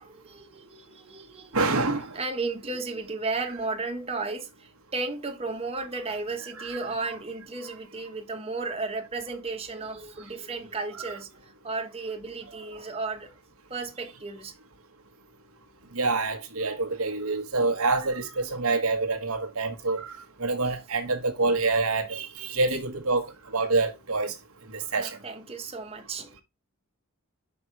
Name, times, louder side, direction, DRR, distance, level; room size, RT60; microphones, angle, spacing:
voice 1, 0.0-1.5 1.9-13.3 13.7-14.5 20.6-20.7 24.9-26.3, right 3 dB, 30° right, 1.3 m, -34 dB
voice 2, 1.5-2.2 15.9-20.1 20.4-24.3 24.7-25.2, right 3 dB, 80° right, 1.3 m, -26 dB
5.7 x 5.3 x 4.6 m
head